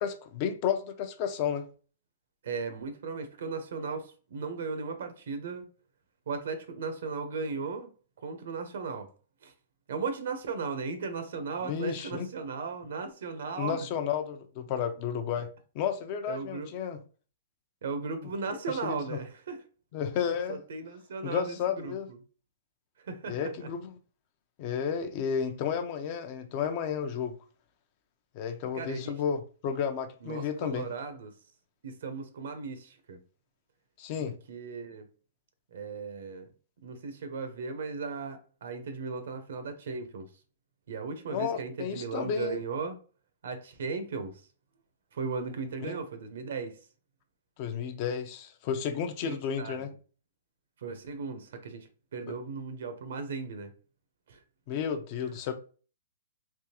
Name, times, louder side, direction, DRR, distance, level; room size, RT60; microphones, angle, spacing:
voice 1, 0.0-1.6 11.6-12.3 13.5-15.5 15.7-17.0 18.7-19.2 19.9-20.6 21.2-22.1 23.3-24.0 24.6-27.4 28.3-30.9 34.0-34.3 41.3-42.6 45.9-46.0 47.6-49.9 52.3-52.4 54.7-55.5, left 7 dB, 40° left, 0.6 m, -32 dB
voice 2, 2.4-5.7 6.3-7.9 8.2-9.1 9.4-9.5 9.9-13.9 16.3-16.7 17.8-19.6 20.2-22.2 23.0-23.7 28.7-29.2 30.2-31.3 31.8-33.2 34.2-35.1 35.7-36.5 36.8-40.3 40.9-43.0 43.4-44.3 45.1-46.8 49.2-49.8 50.8-53.7 54.3-54.4, right 4 dB, 75° right, 0.9 m, -36 dB
3.6 x 3.1 x 2.9 m
hypercardioid pair, 150°, 0 cm